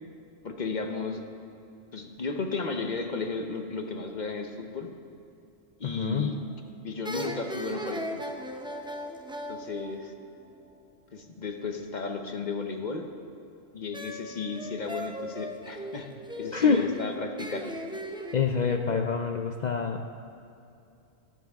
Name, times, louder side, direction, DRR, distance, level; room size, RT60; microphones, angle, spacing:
voice 1, 0.4-1.2 1.9-4.9 5.8-6.4 6.8-8.2 9.5-10.1 11.1-13.0 13.7-16.1 16.4-17.7, left 4 dB, 40° left, 5 dB, 0.8 m, -34 dB
voice 2, 5.8-6.3 16.5-17.0 18.3-20.2, left 5 dB, 70° left, 4 dB, 0.4 m, -26 dB
sound 1, 6.3-6.6 7.0-10.7 13.9-18.3, equal, 10° right, 0.3 m, -38 dB
21.0 x 7.6 x 3.5 m, 2.6 s
omnidirectional pair, 1.3 m